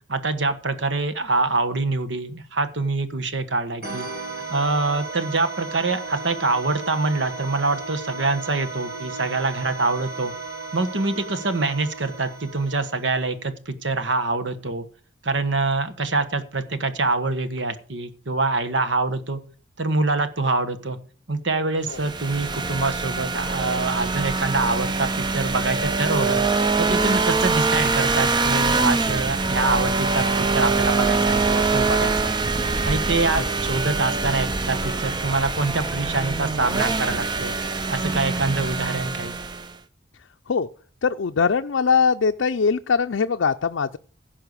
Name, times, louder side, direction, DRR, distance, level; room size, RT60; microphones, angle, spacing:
voice 1, 0.1-4.1 4.5-10.3 10.7-14.9 15.2-19.4 19.8-21.0 21.3-26.4 26.8-32.3 32.8-37.5 37.9-39.4, right 3 dB, 70° right, 1.3 m, -25 dB
sound 1, 3.8-13.3, right 4 dB, 50° right, 2.4 m, -35 dB
sound 2, 21.9-39.8, right 3 dB, 20° right, 0.6 m, -24 dB
voice 2, 41.0-44.0, left 5 dB, 75° left, 0.5 m, -21 dB
16.0 x 5.6 x 6.7 m
head